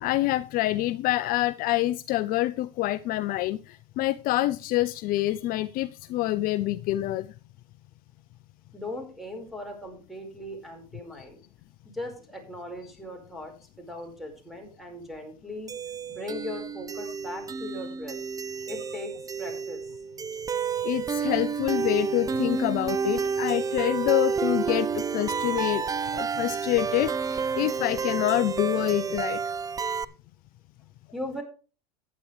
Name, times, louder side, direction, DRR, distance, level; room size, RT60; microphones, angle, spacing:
voice 1, 0.0-7.3 20.8-25.8 26.1-29.5, left 16 dB, 45° left, 15 dB, 0.5 m, -26 dB
voice 2, 8.7-11.4 11.9-13.5 13.8-15.7 16.1-18.2 18.7-20.0 31.1-31.4, left 1 dB, ahead, 4 dB, 4.9 m, -38 dB
sound 1, 15.7-30.0, right 6 dB, 15° right, 0.5 m, -30 dB
14.5 x 9.8 x 3.3 m, 0.35 s
hypercardioid pair, 100°, 20 cm